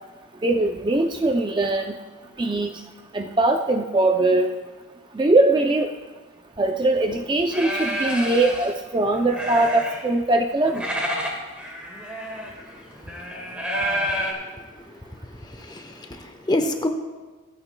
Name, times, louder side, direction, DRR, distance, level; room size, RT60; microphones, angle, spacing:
voice 1, 0.4-1.9 2.4-2.7 3.1-4.5 5.1-5.9 6.6-10.9, right 2 dB, 20° right, 4 dB, 0.4 m, -21 dB
sound 1, 7.0-7.1 7.5-8.7 9.1-10.2 10.5-14.3, equal, 5° right, 1.6 m, -29 dB
voice 2, 14.2-16.9, left 1 dB, 20° left, 5 dB, 0.8 m, -29 dB
25.5 x 9.0 x 2.2 m, 1.3 s
head